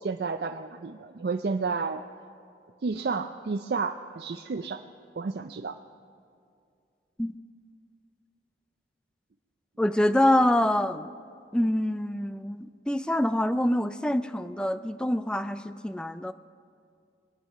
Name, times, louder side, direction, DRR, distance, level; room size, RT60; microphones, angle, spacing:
voice 1, 0.0-2.0 2.8-4.8 5.2-5.8, right 4 dB, 60° right, 6 dB, 0.4 m, -31 dB
voice 2, 9.8-11.1 11.5-16.3, left 1 dB, 5° left, 12 dB, 0.3 m, -25 dB
23.0 x 9.2 x 5.4 m, 2.4 s
head